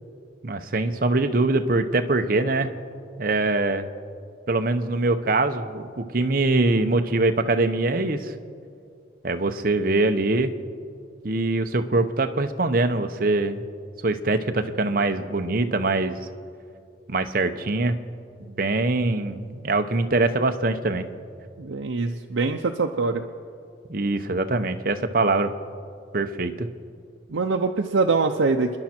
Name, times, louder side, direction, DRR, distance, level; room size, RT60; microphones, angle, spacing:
voice 1, 0.4-2.7 3.2-3.9 4.5-8.3 9.2-10.5 11.2-13.6 14.0-16.2 17.1-18.0 18.4-21.1 23.9-25.5 26.1-26.7, right 2 dB, 50° right, 8 dB, 0.8 m, -23 dB
voice 2, 21.6-23.2 27.3-28.8, right 4 dB, 85° right, 3 dB, 0.6 m, -23 dB
27.5 x 11.0 x 4.4 m, 2.4 s
head